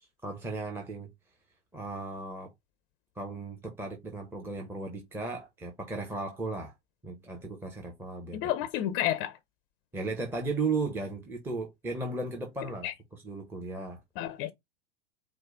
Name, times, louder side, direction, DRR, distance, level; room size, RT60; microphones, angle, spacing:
voice 1, 0.2-1.1 1.7-2.5 3.2-6.7 7.0-8.5 9.9-12.9 13.2-14.0, right 3 dB, 5° right, 0.7 m, -35 dB
voice 2, 8.3-9.4 12.8-12.9 14.2-14.5, left 12 dB, 30° left, 0.5 m, -30 dB
4.7 x 2.1 x 3.5 m
figure-of-eight pair, 95°, 36 cm